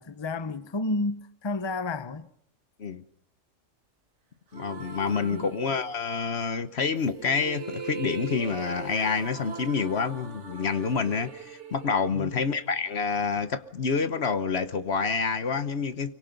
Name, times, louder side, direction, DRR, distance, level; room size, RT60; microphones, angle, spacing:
voice 1, 0.0-2.3 5.0-5.5 12.1-12.3, left 2 dB, 25° left, 0.9 m, -31 dB
voice 2, 4.5-16.1, left 5 dB, 55° left, 1.3 m, -28 dB
sound 1, 4.5-6.2 6.9-13.0, right 5 dB, 60° right, 1.9 m, -41 dB
24.5 x 23.5 x 5.3 m
omnidirectional pair, 1.3 m